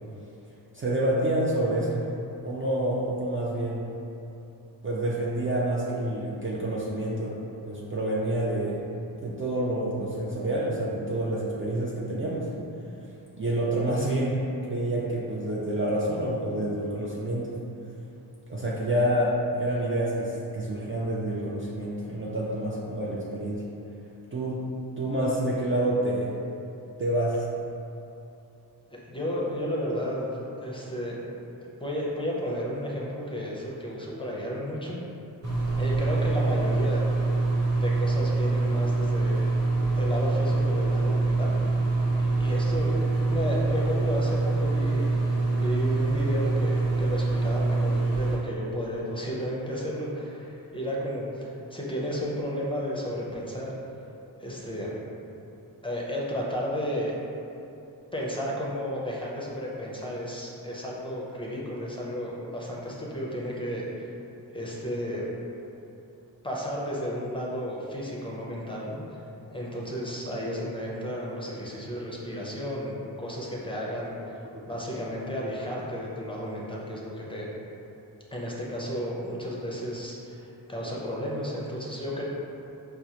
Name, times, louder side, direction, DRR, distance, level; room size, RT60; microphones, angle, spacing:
voice 1, 0.7-2.1 2.4-3.9 4.8-7.4 7.7-8.8 9.2-12.5 13.3-17.6 18.5-23.6 24.3-24.6 25.0-26.3 27.0-27.4, right 1 dB, 30° right, -5 dB, 0.5 m, -28 dB
voice 2, 28.9-30.3 30.6-31.2 31.6-35.0 35.8-37.3 37.7-39.5 40.0-41.6 42.2-45.2 45.5-53.8 54.4-55.0 55.8-57.2 58.1-64.1 64.5-65.3 66.4-69.0 69.5-74.4 74.6-77.5 78.3-82.2, equal, 10° left, -5 dB, 0.6 m, -33 dB
sound 1, 35.4-48.4, right 3 dB, 70° right, 1.1 m, -25 dB
4.5 x 2.0 x 2.8 m, 2.8 s
cardioid pair, 40°, 45 cm